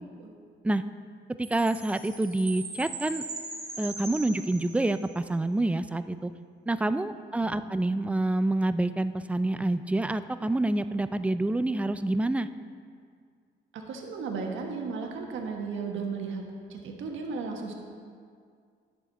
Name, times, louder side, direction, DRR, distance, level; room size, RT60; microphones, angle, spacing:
voice 1, 1.4-3.2 3.8-6.3 6.7-12.5, right 2 dB, 5° right, 12 dB, 0.3 m, -27 dB
Chime, 1.4-5.1, right 3 dB, 30° right, 2.5 m, -40 dB
voice 2, 13.7-16.4 16.7-17.7, right 4 dB, 75° right, 1 dB, 1.3 m, -35 dB
10.5 x 7.3 x 4.0 m, 2.1 s
cardioid pair, 90°, 20 cm